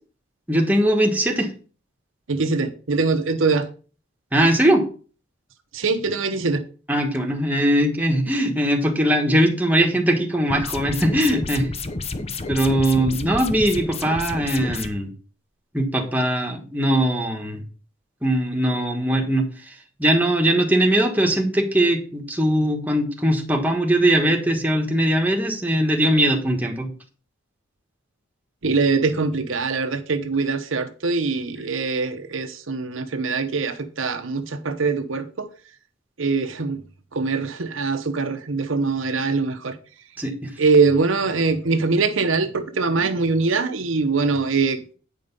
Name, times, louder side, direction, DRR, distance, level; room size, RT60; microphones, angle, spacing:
voice 1, 0.5-1.5 4.3-4.8 6.9-11.7 12.5-15.1 15.7-17.6 18.2-19.5 20.0-26.9 40.2-40.5, right 1 dB, 10° right, 1.4 m, -20 dB
voice 2, 2.3-3.7 5.7-6.7 28.6-35.5 36.2-36.8 37.1-39.8 40.6-44.9, right 4 dB, 70° right, 0.9 m, -23 dB
sound 1, 10.5-14.9, left 3 dB, 30° left, 0.8 m, -30 dB
9.3 x 5.2 x 5.4 m
head